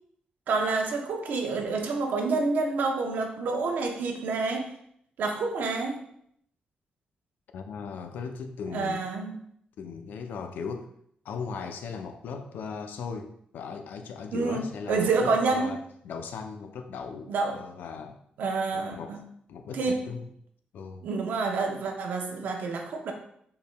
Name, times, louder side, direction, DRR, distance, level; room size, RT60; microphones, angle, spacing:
voice 1, 0.5-4.7 5.2-6.0 8.7-9.3 14.3-15.8 17.3-17.6 18.4-19.2 19.7-20.0 21.0-23.1, right 4 dB, 75° right, 3 dB, 0.7 m, -28 dB
voice 2, 7.5-9.1 9.8-10.9 11.2-18.2 18.7-19.2 19.5-20.3 20.7-21.1, left 5 dB, 85° left, 6 dB, 0.4 m, -38 dB
5.2 x 4.5 x 2.2 m, 0.69 s
wide cardioid pair, 175°, 3 cm